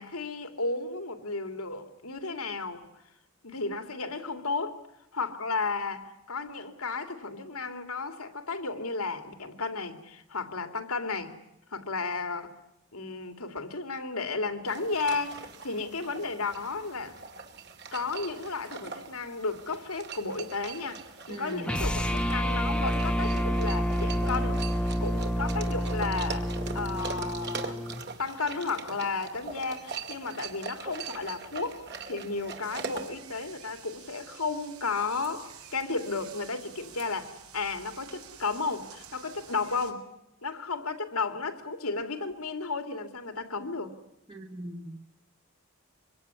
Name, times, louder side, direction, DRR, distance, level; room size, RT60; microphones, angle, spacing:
voice 1, 0.0-2.8 3.4-4.8 5.1-11.4 11.7-12.5 12.9-17.2 17.9-21.0 21.3-24.6 25.0-26.5 26.7-27.8 28.2-31.8 32.1-40.0 40.4-43.9, left 3 dB, 80° left, 2.8 m, -33 dB
sound 1, 14.7-33.1, right 5 dB, 50° right, 2.4 m, -42 dB
voice 2, 21.3-21.8 44.3-45.1, right 1 dB, 20° right, 1.4 m, -40 dB
sound 2, 21.6-28.0, equal, 5° left, 1.0 m, -29 dB
sound 3, 32.6-39.9, right 8 dB, 80° right, 3.9 m, -50 dB
25.0 x 24.0 x 9.9 m
head